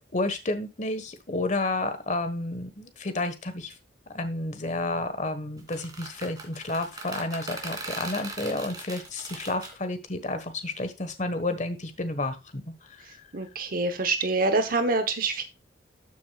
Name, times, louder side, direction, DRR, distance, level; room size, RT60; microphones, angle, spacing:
voice 1, 0.1-3.7 4.1-13.0, left 2 dB, 45° left, 9 dB, 1.4 m, -31 dB
sound 1, 5.6-9.7, right 3 dB, 25° right, 2.3 m, -39 dB
voice 2, 13.3-15.4, right 3 dB, 55° right, 8 dB, 1.0 m, -26 dB
12.5 x 6.6 x 2.4 m, 0.24 s
head